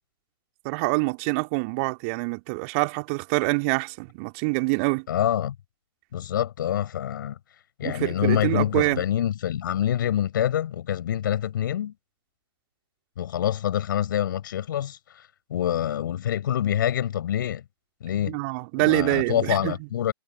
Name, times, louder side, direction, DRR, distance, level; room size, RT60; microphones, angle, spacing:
voice 1, 0.6-5.1 7.8-9.0 18.3-19.7, right 31 dB, 35° right, 2.6 m, -25 dB
voice 2, 5.1-5.6 6.1-7.4 7.8-11.9 13.2-17.6 18.0-18.4 18.8-20.1, left 10 dB, 50° left, 4.3 m, -26 dB
figure-of-eight pair, 115°, 14 cm